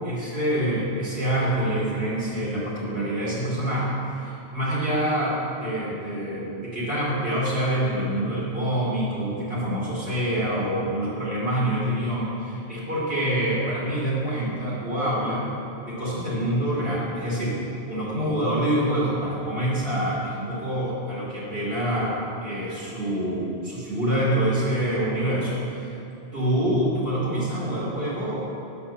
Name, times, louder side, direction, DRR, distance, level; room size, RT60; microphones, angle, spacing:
voice 1, 0.0-15.4 15.9-17.5 17.9-25.9 26.3-28.4, right 1 dB, 60° right, -8 dB, 2.9 m, -26 dB
10.0 x 5.6 x 7.0 m, 2.8 s
omnidirectional pair, 1.1 m